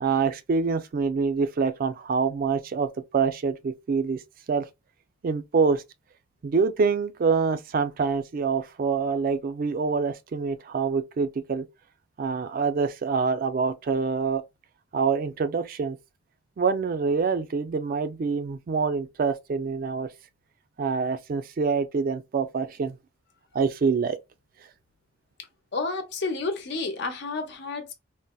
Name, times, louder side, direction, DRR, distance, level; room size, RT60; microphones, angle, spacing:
voice 1, 0.0-4.2 4.5-4.7 5.2-5.8 6.4-11.7 12.2-14.4 14.9-16.0 16.6-20.1 20.8-23.0 23.5-24.2, right 5 dB, 50° right, 0.3 m, -26 dB
voice 2, 25.7-27.9, left 3 dB, 65° left, 0.8 m, -30 dB
3.9 x 2.0 x 2.2 m
head